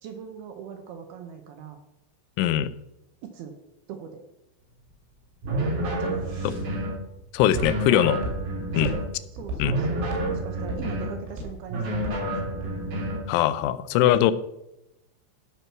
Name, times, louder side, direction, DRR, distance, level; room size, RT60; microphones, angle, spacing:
voice 1, 0.0-1.8 3.2-3.6 3.9-4.2 6.0-6.5 8.7-9.0 9.3-12.7 14.2-14.3, right 7 dB, 75° right, 5 dB, 2.5 m, -40 dB
voice 2, 2.4-2.7 7.3-8.2 8.7-8.9 9.6-9.7 13.3-14.3, left 12 dB, 90° left, 14 dB, 3.1 m, -21 dB
Walk footsteps, 4.6-12.8, right 1 dB, 90° right, 5.1 m, -37 dB
sound 1, 5.4-7.0 7.5-9.1 9.6-11.2 11.7-13.3, right 1 dB, 45° right, 4.8 m, -29 dB
14.0 x 6.0 x 5.8 m, 0.86 s
omnidirectional pair, 5.4 m